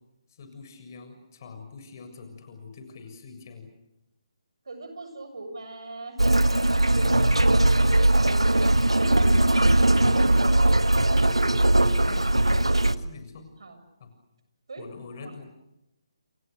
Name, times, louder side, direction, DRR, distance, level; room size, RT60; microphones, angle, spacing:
voice 1, 0.3-3.7 6.6-7.7 11.6-13.4 14.0-14.1 14.8-15.4, left 4 dB, 40° left, 7 dB, 7.1 m, -45 dB
voice 2, 4.7-6.2 6.9-7.3 7.5-8.5 8.9-10.9 13.6-13.8 14.7-14.8 15.2-15.4, right 3 dB, 60° right, 8 dB, 7.5 m, -39 dB
sound 1, 6.2-13.0, right 1 dB, 85° right, 1.6 m, -20 dB
29.5 x 29.5 x 6.6 m, 0.90 s
figure-of-eight pair, 145°, 3 cm